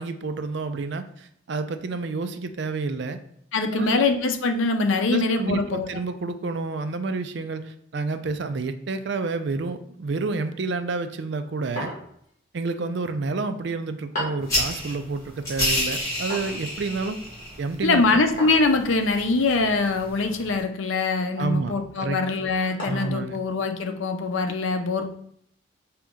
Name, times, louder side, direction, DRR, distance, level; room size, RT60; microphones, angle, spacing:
voice 1, 0.0-3.2 3.7-4.0 5.1-11.9 12.5-17.2 17.6-18.2 21.4-21.7 22.0-22.2 22.8-23.4, right 3 dB, 60° right, 10 dB, 0.4 m, -29 dB
voice 2, 3.5-5.9 17.8-25.1, left 3 dB, 75° left, 6 dB, 0.6 m, -23 dB
sound 1, 11.8-12.3 14.2-14.5 16.3-16.6 18.4-18.7 20.2-20.6 21.2-21.4 22.8-23.3, left 1 dB, 40° left, 1.7 m, -34 dB
sound 2, 14.4-20.6, left 1 dB, 15° left, 1.8 m, -31 dB
5.0 x 2.9 x 3.6 m, 0.67 s
head